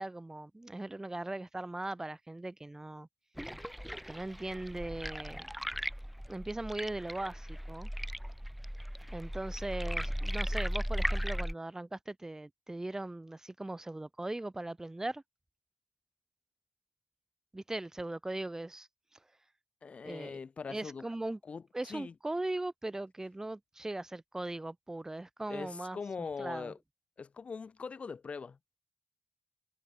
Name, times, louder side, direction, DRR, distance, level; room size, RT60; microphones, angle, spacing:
voice 1, 0.0-3.1 4.0-5.5 6.3-7.9 9.1-15.2 17.5-18.9 20.0-20.4 20.7-21.4 21.7-26.7, right 2 dB, 25° right, 3.7 m, -39 dB
sound 1, 3.4-11.5, equal, ahead, 1.5 m, -37 dB
voice 2, 19.8-21.0 21.4-22.1 25.5-26.8 27.2-28.6, left 5 dB, 70° left, 1.5 m, -42 dB
wide cardioid pair, 80°, 2 cm